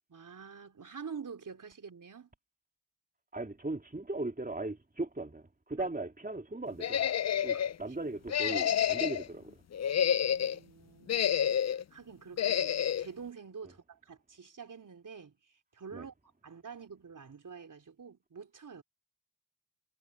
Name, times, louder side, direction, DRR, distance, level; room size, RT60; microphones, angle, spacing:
voice 1, 0.1-2.3 5.8-5.9 7.5-7.6 10.3-15.3 15.7-16.1 16.4-18.8, right 6 dB, 65° right, 4.1 m, -47 dB
voice 2, 3.3-7.0 7.4-9.6 15.9-16.1, right 2 dB, 25° right, 3.1 m, -38 dB
sound 1, 6.8-7.7 8.3-9.3 9.7-10.6 11.1-11.8 12.4-13.1, left 9 dB, 55° left, 0.5 m, -29 dB
cardioid pair, 40°, 33 cm